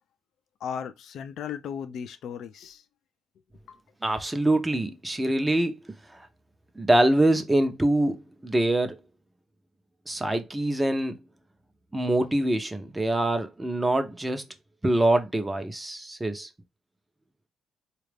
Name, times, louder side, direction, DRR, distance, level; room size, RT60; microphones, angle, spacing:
voice 1, 0.6-2.8 3.7-3.8, left 7 dB, 70° left, 0.5 m, -36 dB
voice 2, 4.0-6.3 6.8-8.2 8.4-9.0 10.1-11.2 11.9-14.4 14.8-16.5, right 1 dB, 15° right, 0.7 m, -24 dB
4.1 x 2.4 x 3.3 m
cardioid pair, 90°, 0 cm